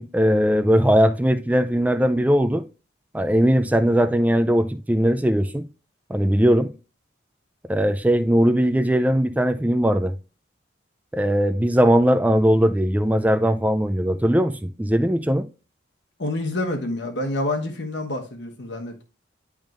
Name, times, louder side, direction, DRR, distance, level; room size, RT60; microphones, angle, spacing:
voice 1, 0.0-2.7 3.1-5.7 6.1-6.7 7.7-10.1 11.1-15.5, equal, 10° right, 0.4 m, -19 dB
voice 2, 16.2-19.0, left 2 dB, 65° left, 1.2 m, -27 dB
10.5 x 3.6 x 2.5 m
head